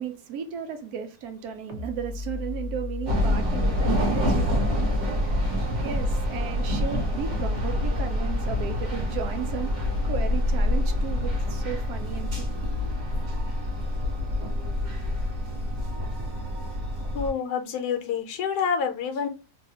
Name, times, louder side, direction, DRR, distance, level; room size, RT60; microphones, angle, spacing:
voice 1, 0.0-4.6 5.2-9.7 10.0-12.7, right 7 dB, 70° right, 1.1 m, -35 dB
sound 1, 1.7-13.0, left 3 dB, 85° right, 0.3 m, -36 dB
sound 2, 3.1-17.3, left 1 dB, 50° right, 1.4 m, -27 dB
voice 2, 17.1-19.3, left 6 dB, 75° left, 1.1 m, -27 dB
3.2 x 2.3 x 2.7 m
omnidirectional pair, 1.8 m